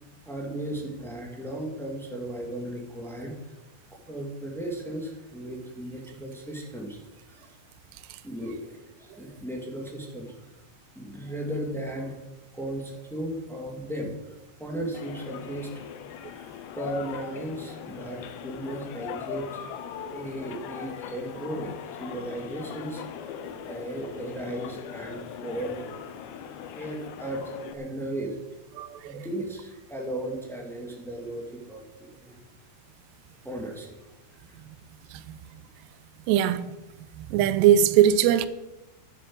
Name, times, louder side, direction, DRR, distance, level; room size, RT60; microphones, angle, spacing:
voice 1, 0.0-3.3 3.9-7.0 7.3-7.6 8.2-10.4 10.9-12.2 12.5-15.8 16.1-19.8 20.1-23.0 23.7-25.9 26.7-28.4 29.0-32.4 33.4-34.0 34.5-34.6, right 1 dB, ahead, 0.9 m, -36 dB
sound 1, 14.9-27.7, left 9 dB, 85° left, 3.1 m, -40 dB
voice 2, 28.8-29.3 35.1-35.2 36.3-36.7 37.2-38.5, right 10 dB, 90° right, 2.9 m, -21 dB
11.0 x 10.0 x 7.8 m
omnidirectional pair, 4.8 m